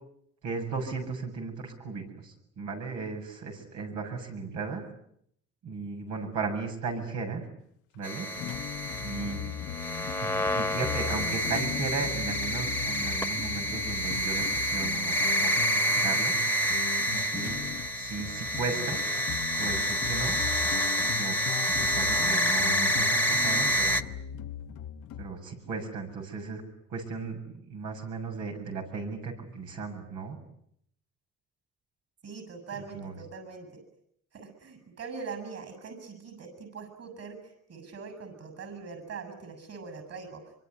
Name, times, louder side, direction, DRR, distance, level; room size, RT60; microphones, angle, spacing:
voice 1, 0.4-4.8 5.6-7.4 7.9-8.3 9.0-9.5 10.2-16.3 17.1-17.6 18.0-19.0 19.6-20.4 21.0-21.3 21.8-24.0 25.2-26.6 26.9-30.4 32.9-33.2, right 4 dB, 85° right, 1 dB, 7.6 m, -36 dB
sound 1, 8.0-24.0, equal, 5° left, 1.5 m, -28 dB
sound 2, 8.3-25.3, left 11 dB, 85° left, 1.1 m, -39 dB
voice 2, 32.2-33.8 34.3-40.4, right 5 dB, 55° right, 10 dB, 7.1 m, -42 dB
25.0 x 24.5 x 9.8 m, 0.72 s
cardioid pair, 90°, 30 cm